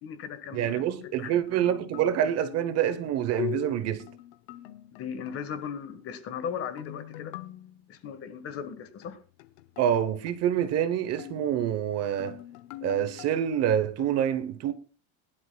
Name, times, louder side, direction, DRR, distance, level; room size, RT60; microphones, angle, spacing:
voice 1, 0.0-0.8 1.2-1.4 4.9-7.3 7.9-9.2, left 7 dB, 35° left, 1.4 m, -37 dB
voice 2, 0.5-4.0 9.8-12.4 12.8-14.7, right 10 dB, 40° right, 0.9 m, -26 dB
sound 1, 1.0-5.8 6.8-8.0 9.0-11.7 12.2-14.1, left 15 dB, 65° left, 0.8 m, -42 dB
21.0 x 11.5 x 2.3 m
cardioid pair, 160°, 40 cm